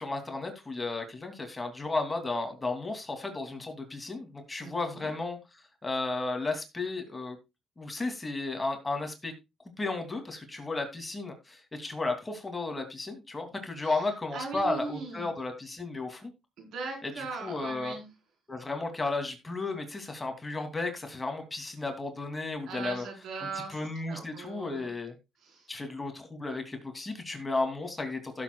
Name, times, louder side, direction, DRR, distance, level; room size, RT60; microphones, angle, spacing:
voice 1, 0.0-5.4 5.8-7.4 7.8-9.3 9.8-16.3 17.2-17.9 18.5-23.0 23.7-25.1 25.7-28.4, left 3 dB, 20° left, 5 dB, 2.7 m, -34 dB
voice 2, 4.6-5.1 13.8-15.3 16.6-18.1 22.6-23.8 24.1-24.9 25.4-25.7, right 4 dB, 80° right, 2 dB, 4.4 m, -40 dB
16.0 x 7.7 x 2.3 m, 0.24 s
cardioid pair, 90°, 0 cm